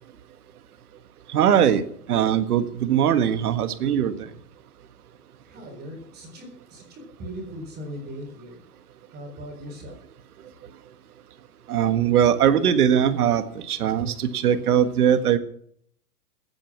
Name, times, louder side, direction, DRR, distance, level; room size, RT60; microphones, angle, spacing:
voice 1, 1.3-1.8 2.1-4.3 11.7-15.4, right 9 dB, 75° right, 10 dB, 1.8 m, -21 dB
voice 2, 5.5-8.6 9.1-9.9, equal, 20° right, 3 dB, 3.9 m, -39 dB
16.5 x 9.0 x 6.1 m, 0.66 s
hypercardioid pair, 140°, 45 cm